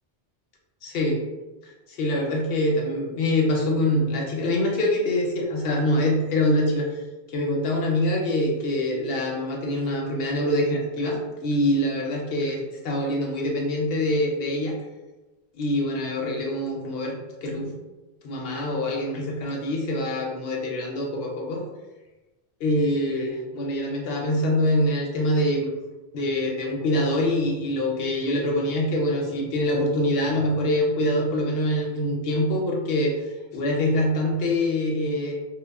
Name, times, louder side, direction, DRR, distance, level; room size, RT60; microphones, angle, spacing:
voice 1, 0.8-1.2 1.6-7.0 7.3-14.7 15.5-17.7 18.2-21.6 22.6-25.7 26.1-35.4, left 1 dB, 65° left, -1 dB, 0.7 m, -25 dB
2.8 x 2.0 x 2.2 m, 1.1 s
omnidirectional pair, 1.1 m